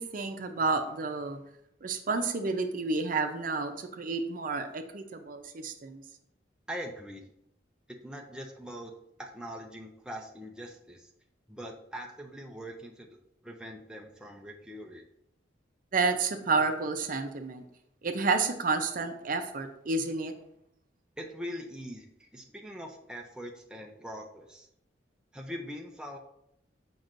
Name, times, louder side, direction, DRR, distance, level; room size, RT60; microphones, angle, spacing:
voice 1, 0.0-1.4 1.8-6.0 15.9-17.6 18.0-20.3, right 4 dB, 50° right, 7 dB, 0.6 m, -30 dB
voice 2, 6.7-7.2 7.9-8.9 9.2-11.1 11.5-13.2 13.4-15.0 21.2-24.7 25.3-26.2, equal, 5° right, 1 dB, 0.5 m, -42 dB
7.6 x 5.3 x 2.5 m, 0.77 s
head